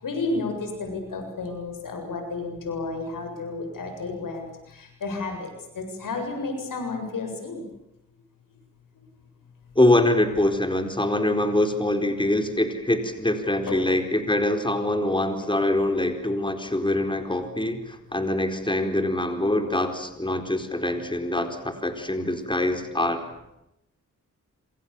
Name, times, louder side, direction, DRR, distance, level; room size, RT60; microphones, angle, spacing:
voice 1, 0.0-4.5 5.0-5.5 5.8-7.6 13.7-13.8, left 3 dB, 85° left, 5 dB, 7.7 m, -31 dB
voice 2, 9.8-23.2, left 1 dB, 15° left, 6 dB, 4.4 m, -24 dB
27.0 x 27.0 x 7.3 m, 0.88 s
cardioid pair, 55°, 32 cm